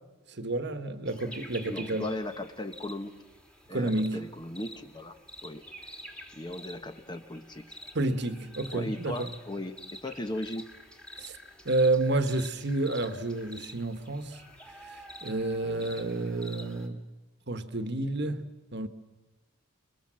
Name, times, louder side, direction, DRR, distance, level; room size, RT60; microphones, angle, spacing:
voice 1, 0.3-2.1 3.7-4.2 7.9-9.3 11.2-11.4 11.6-14.4 14.9-17.1 17.5-18.9, right 2 dB, 50° right, 1.4 m, -30 dB
sound 1, 1.0-16.9, equal, 5° left, 2.1 m, -48 dB
voice 2, 1.6-3.1 3.7-5.1 5.4-5.9 6.3-7.8 8.7-10.7 15.6-15.9, left 1 dB, 20° left, 1.1 m, -37 dB
28.0 x 22.0 x 7.6 m
head